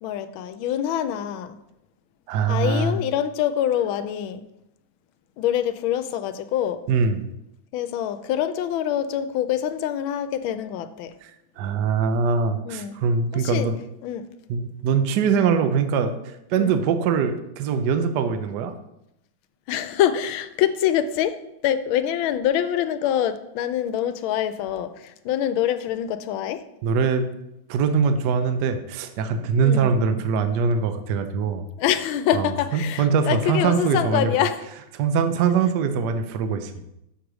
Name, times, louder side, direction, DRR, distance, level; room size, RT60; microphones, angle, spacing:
voice 1, 0.0-1.6 2.5-4.4 5.4-6.8 7.7-11.1 12.6-13.0 13.3-13.7 14.0-14.3 16.6-16.8 19.7-21.4 21.6-26.6 29.6-30.0 31.8-34.6, left 10 dB, 85° left, 11 dB, 1.4 m, -25 dB
voice 2, 2.3-3.0 6.9-7.2 11.6-13.7 14.5-18.7 26.8-27.3 27.7-31.6 32.3-34.3 34.9-36.7, right 5 dB, 70° right, 8 dB, 1.1 m, -22 dB
6.5 x 4.7 x 6.1 m, 0.84 s
omnidirectional pair, 2.2 m